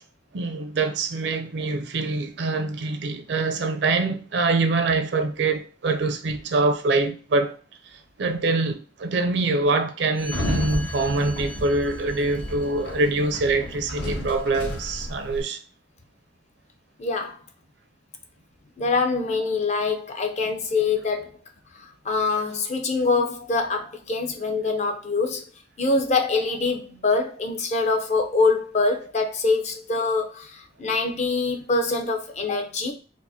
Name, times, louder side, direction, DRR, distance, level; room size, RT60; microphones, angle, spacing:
voice 1, 0.3-7.6 7.9-15.6, right 3 dB, 65° right, 0.5 m, -24 dB
Sliding door, 10.2-15.4, left 1 dB, 65° left, 1.3 m, -32 dB
voice 2, 17.0-17.4 18.8-21.4 21.8-25.4 25.8-32.9, left 3 dB, 40° left, 0.5 m, -24 dB
4.5 x 2.0 x 2.7 m
head